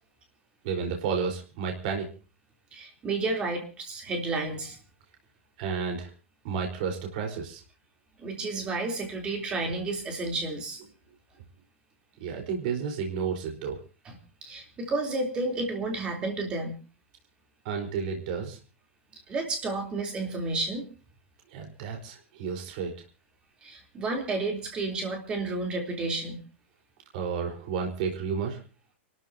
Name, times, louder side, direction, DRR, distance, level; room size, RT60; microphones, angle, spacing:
voice 1, 0.6-2.0 5.6-6.1 6.4-7.6 12.2-13.8 17.6-18.6 21.5-22.9 27.1-28.6, right 6 dB, 40° right, 2 dB, 4.4 m, -31 dB
voice 2, 2.7-4.8 8.2-10.8 14.0-14.1 14.4-16.7 19.3-20.9 23.6-26.4, right 3 dB, 15° right, 3 dB, 3.4 m, -31 dB
30.0 x 13.5 x 2.8 m, 0.36 s
supercardioid pair, 175°, 7 cm